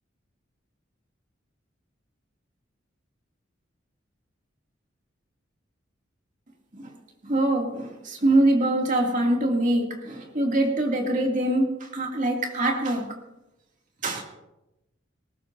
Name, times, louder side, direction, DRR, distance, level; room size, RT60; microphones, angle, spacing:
voice 1, 7.2-13.1 14.0-14.2, right 1 dB, 40° right, 1 dB, 2.3 m, -24 dB
19.5 x 18.5 x 2.6 m, 0.94 s
head